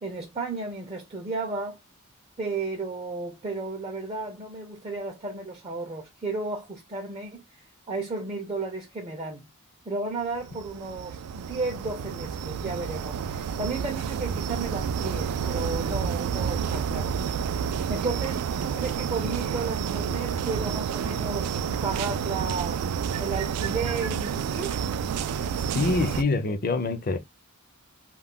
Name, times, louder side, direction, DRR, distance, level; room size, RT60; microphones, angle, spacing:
voice 1, 0.0-1.8 2.4-9.5 9.9-22.8 23.2-24.7, right 3 dB, 25° right, 0.4 m, -33 dB
sound 1, 10.3-26.2, right 7 dB, 90° right, 0.3 m, -29 dB
voice 2, 25.7-27.2, left 3 dB, 40° left, 0.4 m, -25 dB
2.3 x 2.1 x 3.6 m
head